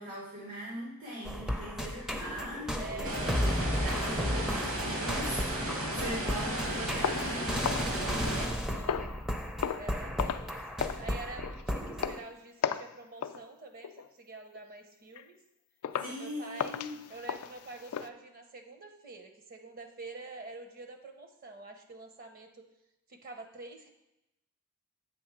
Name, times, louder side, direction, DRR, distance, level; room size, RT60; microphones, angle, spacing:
voice 1, 0.0-3.1 3.8-7.9 16.0-17.0, equal, 90° right, -7 dB, 2.1 m, -41 dB
sound 1, 1.2-12.2, equal, ahead, 0.4 m, -34 dB
voice 2, 2.7-4.5 8.3-9.1 9.6-10.6 11.0-15.4 16.1-16.7 17.1-22.7 23.1-23.9, right 3 dB, 40° right, 4 dB, 0.7 m, -47 dB
sound 2, 3.0-8.5, right 1 dB, 65° right, 1.4 m, -34 dB
sound 3, 7.0-8.5 8.9-9.2 9.6-9.9 10.2-10.5 10.8-11.1 11.4-11.6 12.0-12.2 12.6-12.9 13.2-13.4 13.8-14.1 14.5-14.7 15.2-15.3 15.8-16.2 16.6-18.1, left 8 dB, 90° left, 0.3 m, -35 dB
7.9 x 3.5 x 5.9 m, 0.89 s
head